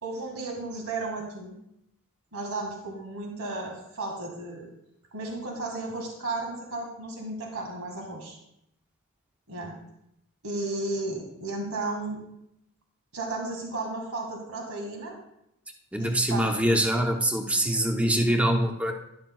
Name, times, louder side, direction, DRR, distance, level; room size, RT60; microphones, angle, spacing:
voice 1, 0.0-1.6 2.3-4.7 5.1-8.4 9.5-9.7 10.4-12.2 13.1-15.2 16.0-16.5, right 2 dB, 80° right, 1 dB, 2.0 m, -34 dB
voice 2, 15.9-18.9, right 1 dB, 5° right, 3 dB, 0.7 m, -24 dB
11.5 x 11.5 x 2.3 m, 0.80 s
head